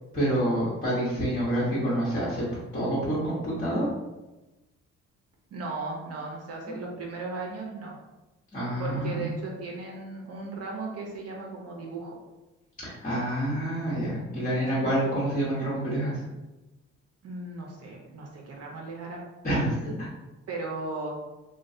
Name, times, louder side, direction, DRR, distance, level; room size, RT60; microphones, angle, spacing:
voice 1, 0.1-2.4 2.7-3.9 8.5-9.3 12.8-16.3 19.4-20.1, right 1 dB, 25° left, -10 dB, 1.1 m, -27 dB
voice 2, 5.5-7.9 8.8-12.1 14.5-14.9 17.2-19.2 20.5-21.2, right 3 dB, 55° right, -1 dB, 0.7 m, -36 dB
3.0 x 2.2 x 2.6 m, 1.1 s
cardioid pair, 90°, 30 cm